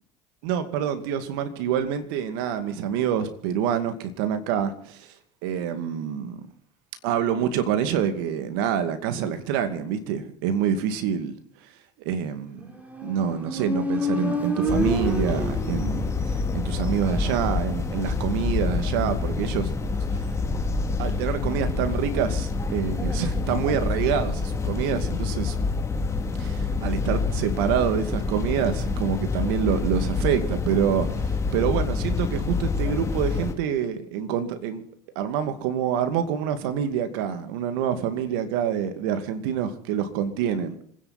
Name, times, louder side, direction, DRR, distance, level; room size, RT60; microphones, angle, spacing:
voice 1, 0.4-5.1 5.4-6.4 7.0-11.3 12.0-12.7 13.0-19.7 20.1-20.2 21.0-25.6 26.4-34.8 35.2-40.7, right 8 dB, 80° right, 9 dB, 2.4 m, -26 dB
Motorcycle, 12.7-16.4, left 1 dB, 10° right, 4.2 m, -28 dB
sound 1, 14.7-33.5, left 4 dB, 25° left, 2.8 m, -27 dB
26.5 x 10.5 x 4.3 m, 0.65 s
supercardioid pair, 85°, 12 cm